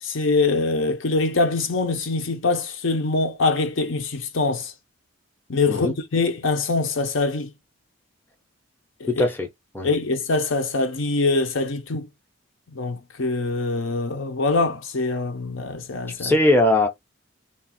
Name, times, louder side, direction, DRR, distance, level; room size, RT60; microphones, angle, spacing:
voice 1, 0.0-4.7 5.5-7.5 9.0-9.2 9.8-12.1 12.7-16.3, left 3 dB, 65° left, 0.7 m, -24 dB
voice 2, 9.1-9.5 9.7-9.9 16.2-16.9, left 1 dB, 10° left, 0.6 m, -20 dB
3.4 x 2.4 x 4.1 m
head